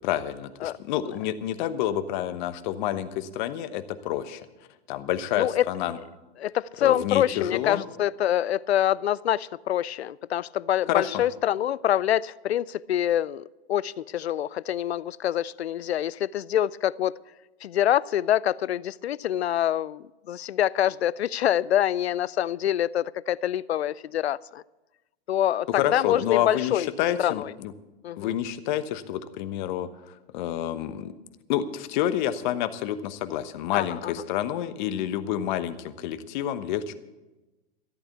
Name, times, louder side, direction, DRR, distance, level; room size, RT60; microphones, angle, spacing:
voice 1, 0.0-4.4 4.9-6.0 6.8-7.8 10.9-11.2 25.7-27.7 28.2-31.1 31.5-36.9, left 11 dB, 45° left, 1.1 m, -29 dB
voice 2, 5.4-5.7 6.4-17.2 17.6-24.6 25.3-26.9 27.2-27.5 28.0-28.3 33.7-34.1, left 11 dB, 85° left, 0.5 m, -26 dB
13.5 x 8.8 x 8.2 m
hypercardioid pair, 120°, 31 cm